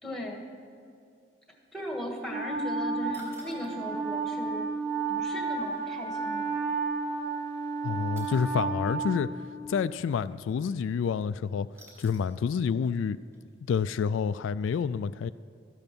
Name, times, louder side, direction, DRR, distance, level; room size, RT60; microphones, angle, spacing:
voice 1, 0.0-0.4 1.7-4.7 5.1-6.5, left 1 dB, ahead, 1.6 m, -37 dB
Wind instrument woodwind instrument, 2.3-9.8, right 4 dB, 65° right, 2.3 m, -32 dB
sound 1, 3.1-3.8 6.1-6.2 8.2-8.5 11.7-12.4 12.8-12.9 13.3-13.4, equal, 15° right, 3.3 m, -50 dB
voice 2, 7.8-9.3 9.7-11.7 12.0-13.2 13.7-15.3, left 6 dB, 85° left, 0.3 m, -28 dB
13.0 x 8.9 x 6.0 m
head